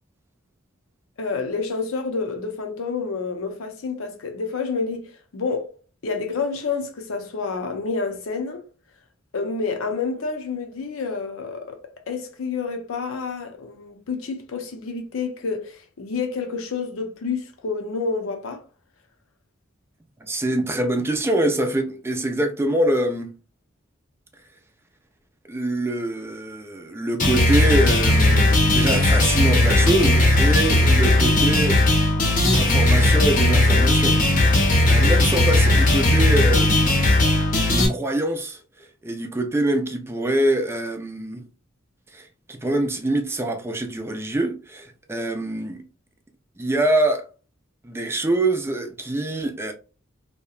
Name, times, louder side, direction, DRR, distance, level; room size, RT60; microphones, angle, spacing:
voice 1, 1.2-5.7 6.0-8.6 9.3-11.8 12.1-18.6, left 4 dB, 75° left, 0.6 m, -29 dB
voice 2, 20.2-23.3 25.4-31.8 32.5-34.2 34.5-36.9 37.9-41.4 42.1-45.8 46.6-47.2 47.8-49.7, right 1 dB, 10° right, 0.3 m, -24 dB
sound 1, 27.2-37.9, left 1 dB, 40° left, 0.7 m, -17 dB
2.7 x 2.1 x 2.3 m
head